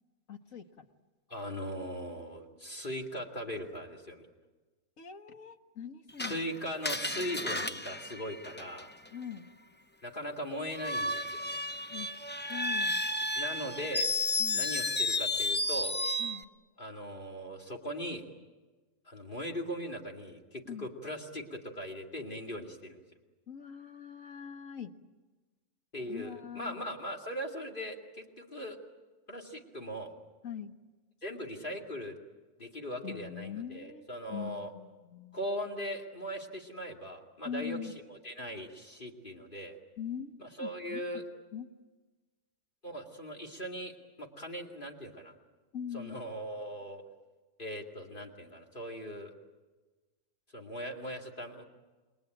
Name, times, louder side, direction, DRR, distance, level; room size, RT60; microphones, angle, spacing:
voice 1, 0.3-0.9 5.0-6.4 9.1-9.5 11.9-12.1 12.5-13.0 14.4-14.7 16.2-16.5 20.7-20.9 23.5-24.9 26.1-26.8 30.4-30.7 33.0-35.4 37.4-37.9 40.0-40.3 40.6-41.2 41.5-41.7 45.7-46.2, left 8 dB, 60° left, 6 dB, 1.7 m, -42 dB
voice 2, 1.3-4.3 6.2-8.9 10.0-11.6 13.3-14.1 14.5-15.9 16.8-18.2 19.1-23.0 25.9-28.8 29.3-30.1 31.2-32.1 32.6-34.7 35.3-37.8 38.1-39.8 40.4-41.2 42.8-43.9 44.2-45.3 45.9-47.0 47.6-49.3 50.5-51.6, equal, 35° left, 2 dB, 2.5 m, -39 dB
Screech, 6.2-9.1 10.7-16.4, left 2 dB, 15° left, 0.3 m, -32 dB
28.5 x 21.0 x 9.1 m, 1.3 s
omnidirectional pair, 1.6 m